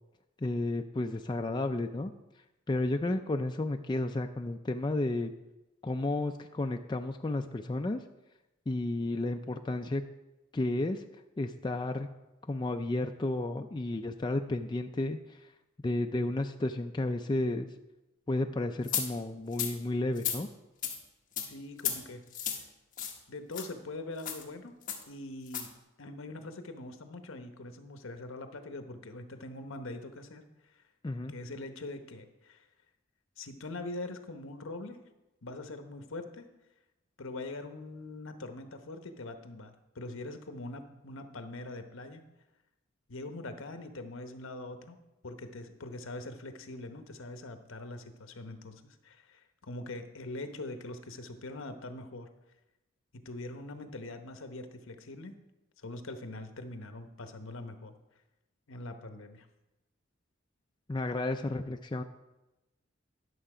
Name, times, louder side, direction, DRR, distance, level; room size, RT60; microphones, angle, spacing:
voice 1, 0.4-2.1 2.7-5.3 5.8-8.0 8.7-10.0 10.5-11.0 11.4-12.1 12.5-15.5 15.8-17.7 18.3-20.5 31.0-31.3 60.9-62.0, left 2 dB, 20° left, 5 dB, 0.3 m, -32 dB
sound 1, 18.9-19.1 19.5-19.7 20.2-20.4 20.8-21.0 21.4-21.5 21.8-22.0 22.3-22.6 23.0-23.2 23.5-23.7 24.2-24.4 24.9-25.0 25.5-25.7, left 8 dB, 40° left, 1.4 m, -33 dB
voice 2, 21.4-22.2 22.6-22.7 23.3-24.8 25.1-25.7 26.0-30.4 30.7-30.8 31.3-32.6 33.4-35.0 35.4-36.5 37.2-42.2 43.1-45.0 45.2-52.3 53.1-55.3 55.8-57.9 58.7-59.5, left 2 dB, 70° left, 7 dB, 0.9 m, -43 dB
11.5 x 6.6 x 4.9 m, 1.0 s
head